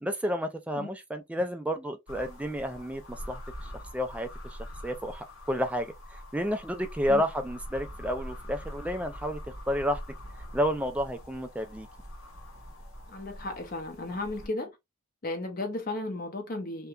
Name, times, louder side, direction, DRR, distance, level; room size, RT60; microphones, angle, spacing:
voice 1, 0.0-10.0 10.5-11.9, equal, 5° right, 0.3 m, -31 dB
sound 1, 2.1-14.5, equal, 90° left, 1.3 m, -44 dB
voice 2, 13.1-14.8 15.2-16.9, left 2 dB, 45° left, 0.6 m, -34 dB
2.8 x 2.2 x 2.3 m
head